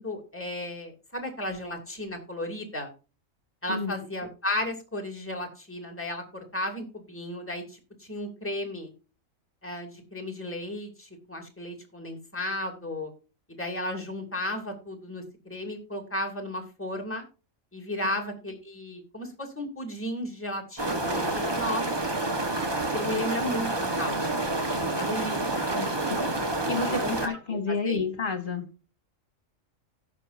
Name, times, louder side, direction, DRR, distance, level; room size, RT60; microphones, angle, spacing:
voice 1, 0.0-2.9 3.6-8.9 9.6-13.1 13.5-17.2 17.7-22.1 22.9-24.2 25.0-25.7 26.9-28.0, left 1 dB, 10° left, 1 dB, 2.6 m, -34 dB
sound 1, 20.8-27.3, right 2 dB, 20° right, 1.1 m, -28 dB
voice 2, 25.4-26.4 26.7-28.7, left 4 dB, 40° left, 6 dB, 2.2 m, -31 dB
17.0 x 6.2 x 2.6 m, 0.33 s
omnidirectional pair, 1.4 m